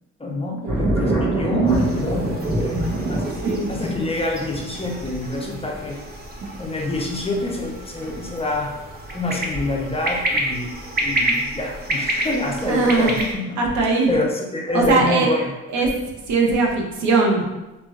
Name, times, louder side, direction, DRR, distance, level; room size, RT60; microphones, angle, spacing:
voice 1, 0.2-3.2 3.7-6.0 6.6-8.7 9.1-13.4 14.1-15.4, left 2 dB, 20° left, 0 dB, 0.4 m, -26 dB
sound 1, 0.7-10.3 10.7-11.3, right 2 dB, 85° right, 1.1 m, -26 dB
sound 2, 1.7-13.4, right 1 dB, 30° right, 0.6 m, -30 dB
voice 2, 3.3-3.7 12.6-13.2 13.6-14.1 14.7-15.3 15.7-15.9 16.3-17.5, right 3 dB, 70° right, 0 dB, 0.7 m, -20 dB
3.0 x 2.5 x 2.4 m, 1.0 s
cardioid pair, 90°, 30 cm